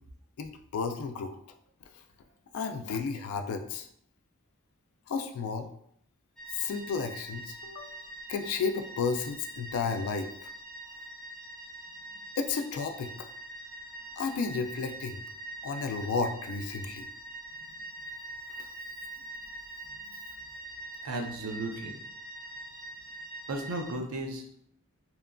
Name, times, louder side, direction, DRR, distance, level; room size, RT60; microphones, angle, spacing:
voice 1, 0.4-1.4 2.5-3.9 5.1-5.7 6.6-8.0 8.3-10.3 12.4-13.1 14.2-15.2 15.6-17.1, left 5 dB, 85° left, 6 dB, 0.3 m, -32 dB
sound 1, 6.4-23.9, right 2 dB, 5° left, 0.3 m, -44 dB
voice 2, 21.0-22.0 23.5-24.4, right 2 dB, 85° right, 2 dB, 0.5 m, -35 dB
2.9 x 2.4 x 2.2 m, 0.70 s
head